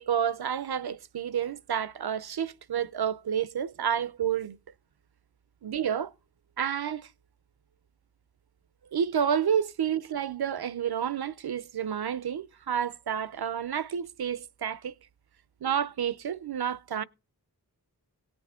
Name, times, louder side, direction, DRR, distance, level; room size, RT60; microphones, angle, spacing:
voice 1, 0.0-4.6 5.6-6.1 6.6-7.1 8.9-14.9 15.6-17.0, right 8 dB, 70° right, 0.6 m, -30 dB
17.5 x 6.9 x 3.6 m
wide cardioid pair, 75°, 40 cm